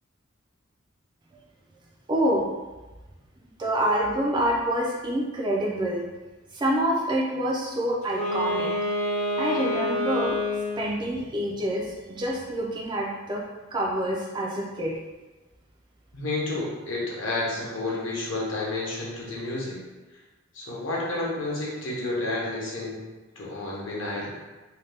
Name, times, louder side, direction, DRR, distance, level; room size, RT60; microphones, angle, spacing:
voice 1, 2.1-2.5 3.6-6.0 6.5-8.7 9.4-10.4 10.8-13.4 13.7-14.9, right 1 dB, 20° right, -3 dB, 0.3 m, -26 dB
Wind instrument woodwind instrument, 8.0-11.0, left 1 dB, 35° left, 0.6 m, -27 dB
voice 2, 16.1-19.8 20.5-23.0 23.4-24.3, left 2 dB, 65° left, -4 dB, 0.8 m, -30 dB
2.7 x 2.1 x 3.2 m, 1.2 s
head